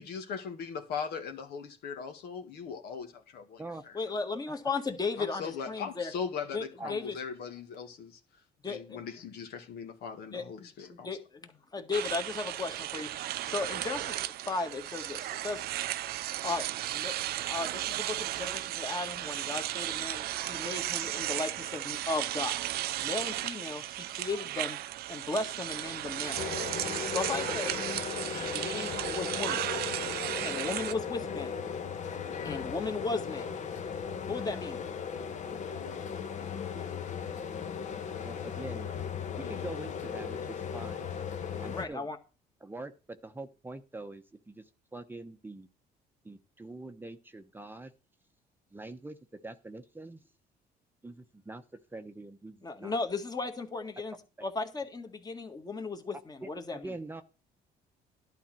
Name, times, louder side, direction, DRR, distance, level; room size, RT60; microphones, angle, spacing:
voice 1, 0.0-4.0 5.2-8.2 8.6-11.1, left 6 dB, 70° left, 1.8 m, -39 dB
voice 2, 3.9-6.1 6.5-7.2 8.6-9.0 10.3-13.1 13.5-15.6 16.4-17.2 17.4-22.6 23.0-24.8 25.1-26.4 26.8-27.8 28.3-29.7 30.4-31.6 32.4-33.5 34.3-34.8 41.7-42.2 52.6-54.1 54.4-56.9, left 3 dB, 25° left, 1.7 m, -36 dB
sound 1, 11.9-30.9, right 14 dB, 65° right, 0.5 m, -35 dB
sound 2, 26.4-41.9, left 6 dB, 45° left, 1.1 m, -37 dB
voice 3, 38.2-38.9 39.4-41.1 41.6-42.1 42.6-44.7 44.9-45.7 46.2-47.9 48.7-49.2 49.4-50.2 51.0-51.6 51.9-52.9 56.4-57.2, right 2 dB, 10° right, 0.9 m, -44 dB
11.5 x 4.2 x 7.6 m
cardioid pair, 110°, 17 cm